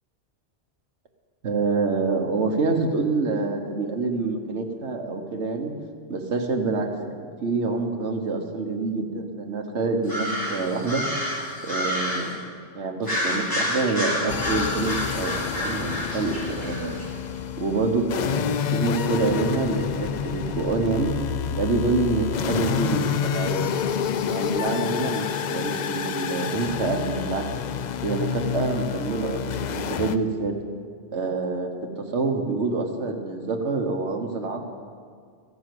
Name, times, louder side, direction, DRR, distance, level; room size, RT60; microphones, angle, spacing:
voice 1, 1.4-5.7 6.1-11.0 11.6-12.5 12.7-17.0 17.6-18.5 18.7-21.1 21.5-23.6 24.2-27.5 28.0-30.6 31.1-34.7, right 3 dB, 75° right, 3 dB, 1.5 m, -26 dB
sound 1, 10.0-12.3 13.0-17.1, left 1 dB, 20° left, 3.6 m, -29 dB
sound 2, 14.3-30.2, left 8 dB, 60° left, 0.5 m, -28 dB
14.5 x 7.8 x 7.8 m, 2.1 s
omnidirectional pair, 1.2 m